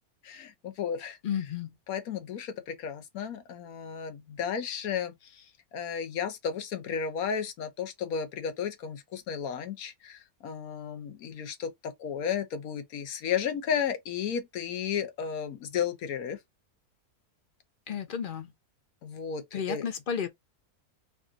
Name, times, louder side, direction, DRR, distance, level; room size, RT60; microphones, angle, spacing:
voice 1, 0.2-1.2 1.9-5.5 5.7-16.4 19.0-19.8, left 7 dB, 75° left, 1.2 m, -33 dB
voice 2, 1.2-1.8 17.9-18.5 19.5-20.3, left 7 dB, 55° left, 0.6 m, -32 dB
3.5 x 2.4 x 3.8 m
omnidirectional pair, 1.6 m